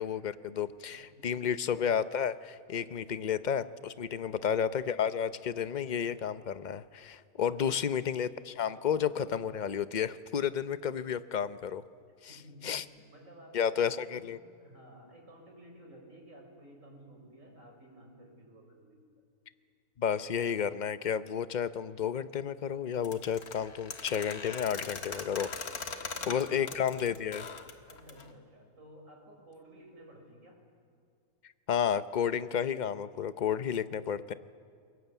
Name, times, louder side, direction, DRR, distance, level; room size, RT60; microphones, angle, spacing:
voice 1, 0.0-11.8 12.2-12.8 13.5-14.4 20.0-25.5 26.3-27.5 31.7-34.3, left 8 dB, 45° left, 13 dB, 0.6 m, -32 dB
voice 2, 0.9-1.6 2.8-3.2 4.1-4.3 7.5-7.6 12.3-19.1 25.9-26.8 27.9-30.6, right 1 dB, 60° right, 1 dB, 5.5 m, -54 dB
sound 1, 23.0-28.3, left 5 dB, 80° left, 2.1 m, -40 dB
28.5 x 22.0 x 8.2 m, 2.4 s
omnidirectional pair, 1.5 m